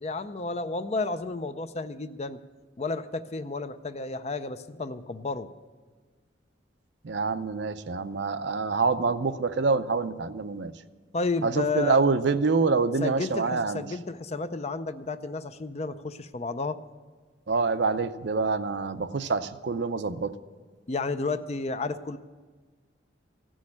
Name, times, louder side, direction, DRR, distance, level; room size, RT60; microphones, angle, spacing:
voice 1, 0.0-2.4 2.8-5.5 11.1-12.0 13.0-16.8 20.9-22.2, left 3 dB, 35° left, 11 dB, 0.5 m, -32 dB
voice 2, 7.0-10.7 11.4-13.8 17.5-20.4, right 4 dB, 65° right, 11 dB, 0.6 m, -26 dB
16.0 x 6.3 x 9.8 m, 1.4 s
head